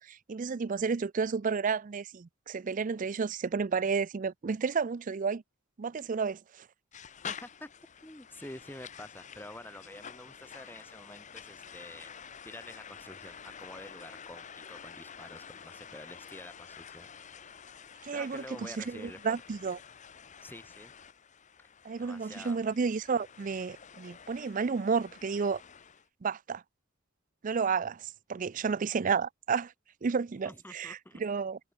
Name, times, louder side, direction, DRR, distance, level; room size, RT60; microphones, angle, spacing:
voice 1, 0.0-5.4 5.8-6.7 18.0-19.8 21.8-25.6 26.2-26.6 27.4-29.7 30.0-31.6, right 5 dB, 40° right, 0.4 m, -31 dB
sound 1, 6.9-26.1, left 7 dB, 35° left, 0.8 m, -49 dB
voice 2, 7.2-7.7 8.0-17.1 18.1-19.4 20.4-20.9 21.6-21.7 22.0-22.6 30.4-31.2, left 1 dB, 10° left, 2.3 m, -48 dB
head